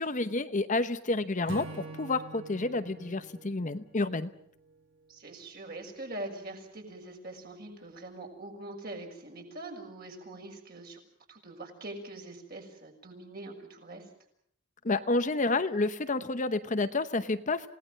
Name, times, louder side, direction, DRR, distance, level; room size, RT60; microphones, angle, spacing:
voice 1, 0.0-4.3 14.8-17.7, left 2 dB, 35° left, 10 dB, 0.9 m, -29 dB
Acoustic guitar / Strum, 1.5-4.8, right 3 dB, 65° right, 2.9 m, -45 dB
voice 2, 5.1-11.0 11.3-14.1, right 2 dB, 45° right, 2 dB, 6.3 m, -43 dB
28.0 x 18.0 x 7.5 m, 0.68 s
head